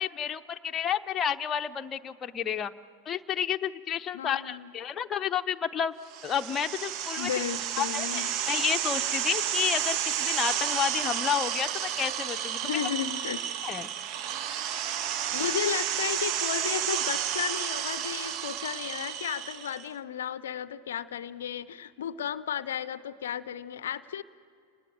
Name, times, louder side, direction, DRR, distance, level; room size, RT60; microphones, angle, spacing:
voice 1, 0.0-2.7 3.1-5.9 6.2-7.3 7.8-12.8 13.6-13.9, left 8 dB, 25° left, 6 dB, 0.7 m, -31 dB
voice 2, 4.1-4.7 7.2-8.3 12.6-13.8 15.3-24.2, left 9 dB, 60° left, 17 dB, 0.6 m, -34 dB
sound 1, 6.1-19.9, right 10 dB, 40° right, 0.7 m, -31 dB
30.0 x 19.0 x 9.1 m, 2.5 s
figure-of-eight pair, 90°, 0 cm